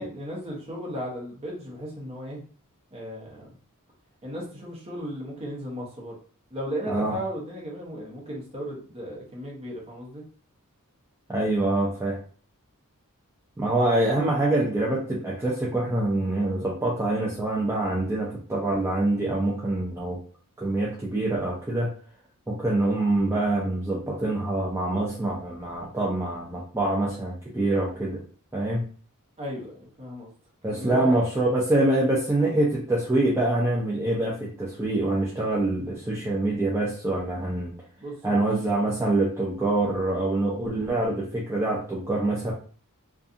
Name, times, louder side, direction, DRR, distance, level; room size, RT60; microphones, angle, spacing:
voice 1, 0.0-2.4 2.9-3.5 4.2-6.2 6.5-10.2 29.4-30.3 30.7-31.1 38.0-38.5, equal, 30° right, -3 dB, 0.9 m, -35 dB
voice 2, 11.3-12.2 13.6-20.2 20.6-21.9 22.5-28.2 28.5-28.9 30.6-37.7 38.2-42.5, right 2 dB, 10° right, -5 dB, 0.5 m, -25 dB
2.6 x 2.4 x 2.4 m, 0.42 s
head